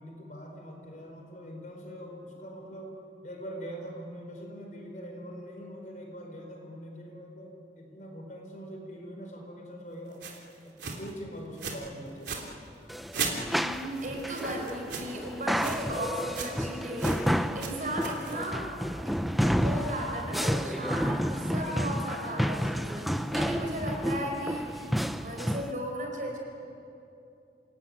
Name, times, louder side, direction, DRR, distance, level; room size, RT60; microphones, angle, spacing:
voice 1, 0.0-2.9 3.2-10.2 10.6-12.4, equal, 45° left, 1 dB, 5.0 m, -43 dB
sound 1, 10.2-10.4 10.8-11.1 11.6-11.9 12.1-12.5 13.1-15.2 15.5-15.9 16.1-16.6 17.0-17.3 17.6-18.5, right 5 dB, 80° right, 3.2 m, -37 dB
sound 2, 12.9-25.7, equal, ahead, 0.6 m, -30 dB
voice 2, 13.6-18.7 19.0-24.9 25.2-26.4, right 1 dB, 45° right, 0 dB, 5.2 m, -36 dB
28.0 x 17.5 x 9.5 m, 2.7 s
head